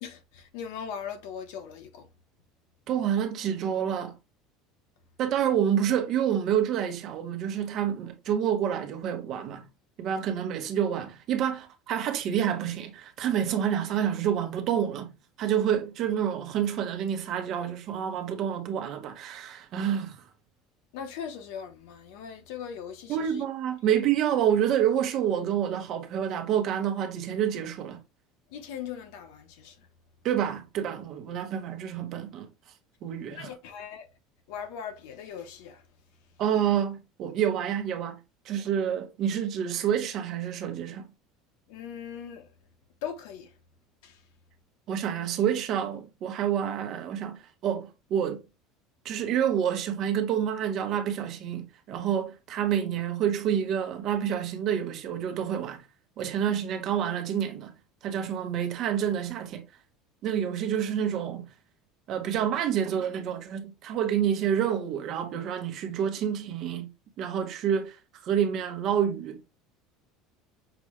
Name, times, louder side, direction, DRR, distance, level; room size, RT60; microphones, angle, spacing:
voice 1, 0.0-2.1 10.2-10.3 20.9-23.4 23.9-24.0 28.5-29.9 33.3-34.1 34.5-35.8 41.7-42.5 43.0-43.5 44.0-44.2, left 8 dB, 75° left, 1.0 m, -39 dB
voice 2, 2.9-4.2 5.2-9.6 10.0-15.1 15.4-20.2 23.1-28.0 30.2-32.5 33.0-33.5 36.4-38.2 38.4-41.0 44.9-48.4 49.0-55.8 56.2-57.7 58.0-59.6 60.2-61.4 62.1-66.9 67.2-68.0 68.2-69.4, right 9 dB, 40° right, 0.9 m, -28 dB
6.0 x 2.3 x 3.0 m
cardioid pair, 165°, 0 cm